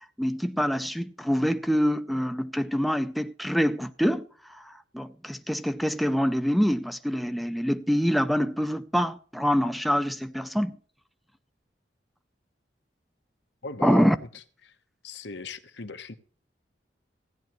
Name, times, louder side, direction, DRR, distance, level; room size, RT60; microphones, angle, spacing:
voice 1, 0.2-10.8 13.8-14.2, equal, ahead, 0.4 m, -25 dB
voice 2, 13.6-14.8 15.0-16.1, left 3 dB, 75° left, 1.0 m, -39 dB
16.0 x 10.5 x 3.0 m
head